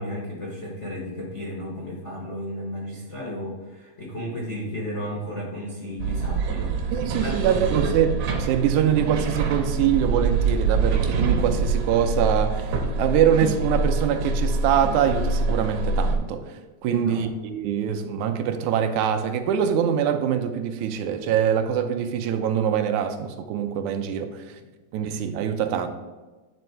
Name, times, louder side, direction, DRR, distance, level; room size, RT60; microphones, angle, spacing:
voice 1, 0.0-7.5 16.8-17.2, equal, 85° left, 0.6 m, -34 dB
sound 1, 6.0-16.2, right 3 dB, 70° right, 1.7 m, -25 dB
voice 2, 6.9-16.5 16.8-24.6 24.9-25.9, right 9 dB, 85° right, 2.0 m, -24 dB
10.0 x 3.5 x 4.4 m
omnidirectional pair, 3.3 m